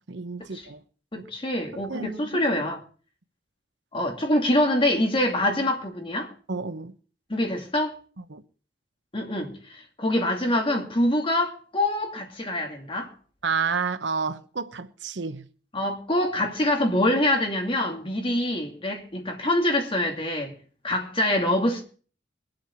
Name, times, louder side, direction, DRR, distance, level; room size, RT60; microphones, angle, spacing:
voice 1, 0.1-0.8 1.7-2.4 6.5-6.9 8.3-8.4 13.4-15.4, right 5 dB, 70° right, 1.0 m, -30 dB
voice 2, 1.1-2.8 3.9-6.3 7.3-8.0 9.1-13.1 15.7-20.5 20.8-21.8, left 1 dB, 30° left, 2.6 m, -25 dB
22.5 x 7.9 x 4.5 m
head